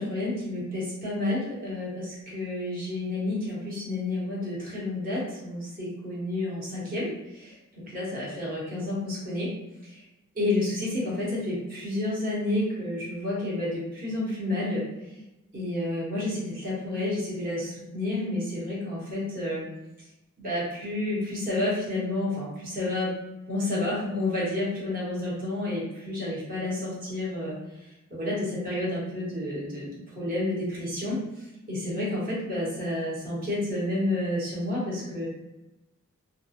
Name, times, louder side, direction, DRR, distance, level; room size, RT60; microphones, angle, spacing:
voice 1, 0.0-7.5 7.9-9.5 10.3-14.8 15.5-19.6 20.4-23.1 23.5-27.5 28.1-29.9 30.1-31.2 31.7-35.3, left 2 dB, 40° right, -6 dB, 1.0 m, -30 dB
2.4 x 2.2 x 2.6 m, 0.98 s
head